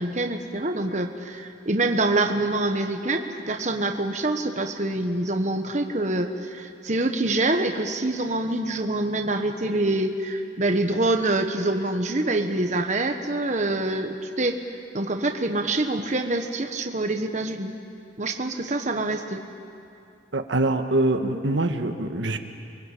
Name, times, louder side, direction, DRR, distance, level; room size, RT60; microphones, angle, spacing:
voice 1, 0.0-14.6 14.9-17.7 18.2-19.4, right 2 dB, 40° right, 4 dB, 1.3 m, -25 dB
voice 2, 20.3-22.4, right 2 dB, 80° right, 6 dB, 1.5 m, -24 dB
29.0 x 23.0 x 8.5 m, 2.5 s
head